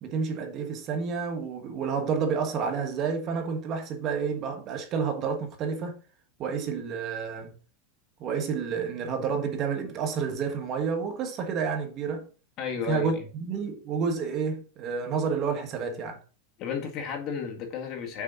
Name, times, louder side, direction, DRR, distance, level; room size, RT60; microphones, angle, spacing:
voice 1, 0.0-6.0 6.4-7.5 8.2-12.3 12.9-16.2, right 5 dB, 35° right, 1.4 m, -30 dB
voice 2, 12.6-13.3 16.6-18.2, left 6 dB, 40° left, 1.9 m, -33 dB
6.3 x 5.1 x 4.1 m
supercardioid pair, 145°, 0 cm